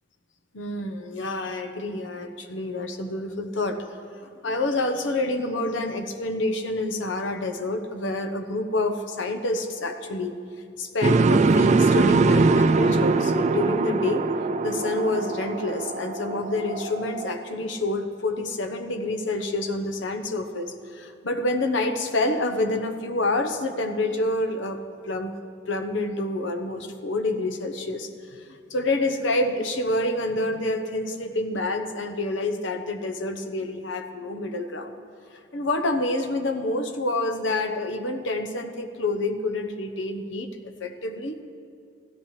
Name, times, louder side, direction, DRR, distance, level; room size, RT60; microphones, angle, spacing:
voice 1, 0.5-3.8 4.4-10.3 10.8-14.3 14.6-24.8 25.0-25.3 25.7-35.0 35.5-41.4, left 2 dB, 90° left, 6 dB, 1.0 m, -28 dB
sound 1, 11.0-17.0, right 3 dB, 40° right, 0.3 m, -21 dB
sound 2, 12.3-17.3, right 2 dB, 70° right, 0.8 m, -38 dB
15.5 x 13.0 x 3.3 m, 2.4 s
head